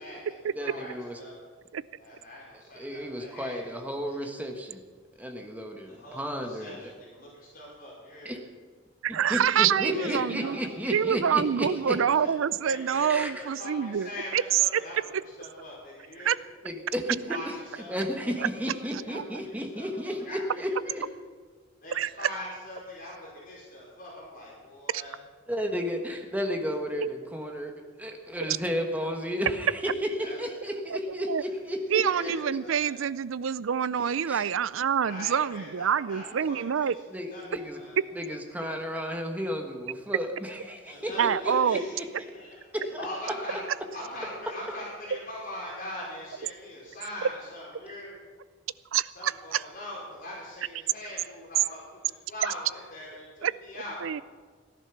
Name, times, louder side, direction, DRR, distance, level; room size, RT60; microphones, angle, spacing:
voice 1, 0.0-1.4 2.0-4.2 5.9-8.3 9.9-10.5 11.0-11.3 11.8-12.3 12.6-16.4 17.2-20.9 21.8-25.1 30.1-30.4 31.4-31.5 31.9-33.0 35.1-36.9 37.3-38.0 40.8-41.9 42.3-43.6 43.9-48.2 49.1-51.8 52.1-54.0, left 1 dB, 45° left, -5 dB, 5.0 m, -42 dB
voice 2, 0.5-1.2 2.7-4.8 5.2-6.9 8.2-8.4 9.1-12.0 13.1-13.3 16.6-17.5 17.9-21.0 25.5-27.7 28.0-29.9 30.2-32.3 34.3-34.4 37.1-37.8 38.1-41.8 42.9-43.0, equal, 10° right, 3 dB, 1.4 m, -33 dB
voice 3, 9.0-10.6 10.9-14.8 16.2-16.4 19.1-19.2 21.9-22.3 24.9-25.0 27.0-27.1 28.5-28.6 30.9-31.4 31.9-37.0 41.2-41.8 45.1-45.2 48.9-49.6 53.4-53.5 54.0-54.2, right 8 dB, 85° right, 18 dB, 0.4 m, -26 dB
17.0 x 11.5 x 6.0 m, 1.5 s
head